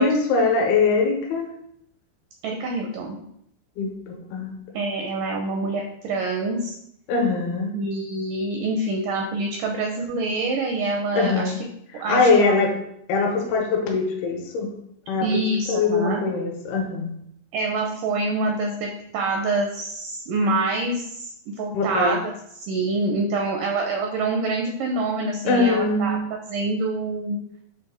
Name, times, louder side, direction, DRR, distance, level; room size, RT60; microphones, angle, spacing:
voice 1, 0.0-1.5 3.8-4.9 7.1-7.7 11.1-11.6 11.9-12.7 13.1-14.7 15.1-17.1 21.7-22.2 25.4-26.2, left 4 dB, 75° left, 1 dB, 2.9 m, -22 dB
voice 2, 2.4-3.2 4.7-6.7 7.7-11.5 12.0-12.5 15.2-16.2 17.5-22.4 22.6-27.4, right 2 dB, 85° right, 2 dB, 1.9 m, -26 dB
7.5 x 2.7 x 4.9 m, 0.73 s
omnidirectional pair, 4.7 m